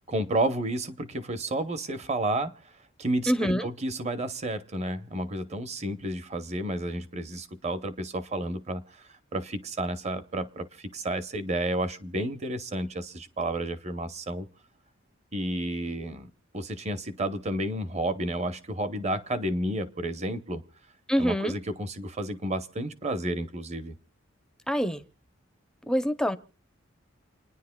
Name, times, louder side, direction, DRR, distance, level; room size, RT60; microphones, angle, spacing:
voice 1, 0.1-2.7 3.0-14.5 15.3-20.6 21.2-23.9, right 1 dB, 30° right, 0.8 m, -31 dB
voice 2, 3.3-3.7 21.1-21.5 24.7-25.0 25.9-26.4, equal, 5° left, 0.5 m, -25 dB
29.0 x 10.0 x 2.2 m
head